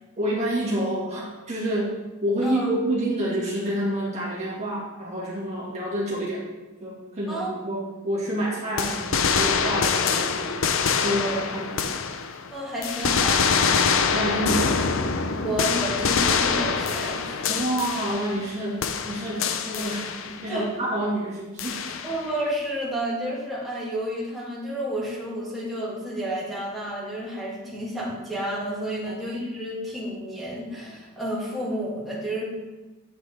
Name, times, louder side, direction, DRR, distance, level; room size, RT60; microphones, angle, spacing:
voice 1, 0.2-6.5 6.8-10.6 11.0-12.0 14.1-14.8 17.5-22.0 29.1-29.2, right 1 dB, 30° right, -6 dB, 1.9 m, -28 dB
sound 1, 8.8-12.5 12.8-18.5 18.8-20.5 21.6-22.3, left 5 dB, 65° left, 0.6 m, -25 dB
voice 2, 12.5-13.9 15.4-17.5 20.5-20.7 22.0-32.4, right 1 dB, ahead, -7 dB, 2.3 m, -31 dB
11.0 x 8.2 x 3.5 m, 1.2 s
head